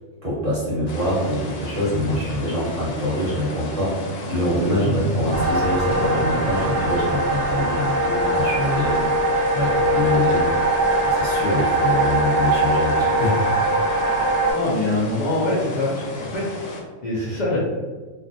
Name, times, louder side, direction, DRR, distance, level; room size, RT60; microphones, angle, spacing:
voice 1, 0.2-10.5 11.0-13.7, left 1 dB, 30° right, -9 dB, 1.0 m, -25 dB
sound 1, 0.9-16.8, left 1 dB, 80° left, 0.9 m, -33 dB
sound 2, 5.3-14.5, right 1 dB, 70° right, 0.9 m, -21 dB
voice 2, 14.5-17.6, left 2 dB, 65° left, -6 dB, 0.4 m, -24 dB
2.4 x 2.1 x 2.6 m, 1.3 s
omnidirectional pair, 1.3 m